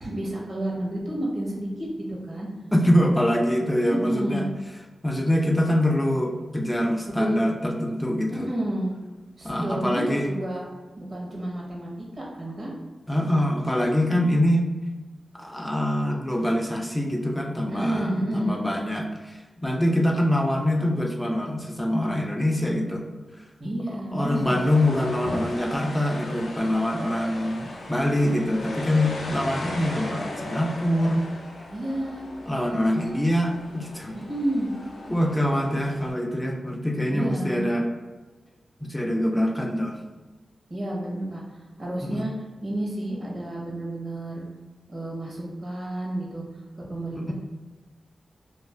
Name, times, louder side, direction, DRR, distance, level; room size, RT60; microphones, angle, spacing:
voice 1, 0.0-2.5 3.8-4.5 7.0-7.4 8.3-8.9 9.4-10.6 11.0-12.7 17.7-18.6 23.6-24.6 25.2-25.3 31.7-32.3 34.3-34.7 37.1-37.6 40.7-41.4 41.8-42.3 42.6-44.4 44.9-46.4 46.9-47.3, right 1 dB, 55° right, -3 dB, 0.9 m, -30 dB
voice 2, 2.7-4.5 5.0-8.5 9.4-10.3 13.1-14.7 15.3-23.1 23.9-31.3 32.5-34.2 35.1-37.9 38.8-40.0 42.0-42.3 47.2-47.3, left 1 dB, 10° left, 2 dB, 0.4 m, -24 dB
sound 1, 24.2-36.1, left 2 dB, 90° left, 0.4 m, -37 dB
2.4 x 2.0 x 3.2 m, 1.2 s
cardioid pair, 60°, 0 cm